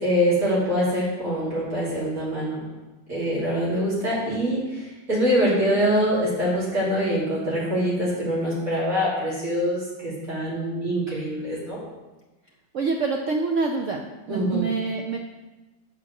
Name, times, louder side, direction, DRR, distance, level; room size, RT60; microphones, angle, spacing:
voice 1, 0.0-2.7 3.1-11.8 14.3-14.7, equal, 45° right, -9 dB, 3.2 m, -24 dB
voice 2, 12.7-14.0 14.3-15.2, right 4 dB, 70° right, 2 dB, 0.7 m, -26 dB
7.1 x 5.1 x 6.4 m, 1.1 s
omnidirectional pair, 2.0 m